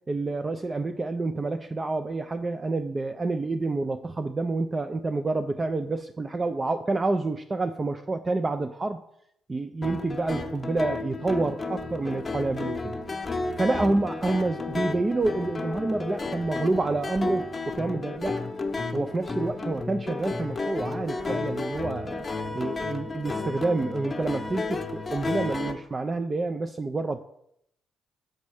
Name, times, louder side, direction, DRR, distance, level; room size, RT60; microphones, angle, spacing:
voice 1, 0.1-9.0 9.5-12.9 13.6-18.4 18.9-22.3 22.5-27.2, right 2 dB, 25° right, 7 dB, 0.4 m, -28 dB
sound 1, 9.8-25.7, left 3 dB, 30° left, 0.8 m, -32 dB
6.4 x 4.2 x 4.8 m, 0.74 s
cardioid pair, 90°, 0 cm